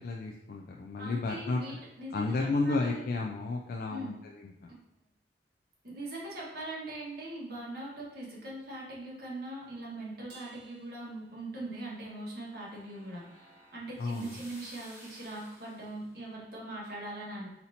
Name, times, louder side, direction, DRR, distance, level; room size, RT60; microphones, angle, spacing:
voice 1, 0.0-1.8 2.1-4.7 14.0-14.4, left 3 dB, 55° left, 1 dB, 0.4 m, -32 dB
voice 2, 1.0-3.0 3.9-4.1 5.8-17.5, right 1 dB, 60° right, -5 dB, 1.5 m, -41 dB
Crash cymbal, 10.3-12.0, right 3 dB, 80° right, 1.3 m, -57 dB
sound 1, 11.5-16.1, right 1 dB, 15° right, 1.1 m, -56 dB
4.2 x 4.1 x 2.8 m, 0.97 s
head